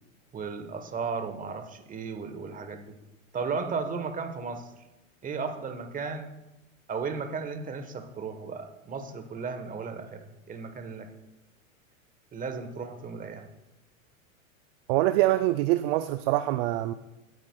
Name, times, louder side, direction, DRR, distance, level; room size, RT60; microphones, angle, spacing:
voice 1, 0.3-2.9 3.3-4.7 5.2-6.3 6.9-11.1 12.3-13.5, right 5 dB, 20° right, 7 dB, 1.2 m, -35 dB
voice 2, 14.9-16.9, right 16 dB, 45° right, 12 dB, 0.5 m, -24 dB
18.0 x 9.2 x 2.3 m, 0.98 s
hypercardioid pair, 110°, 41 cm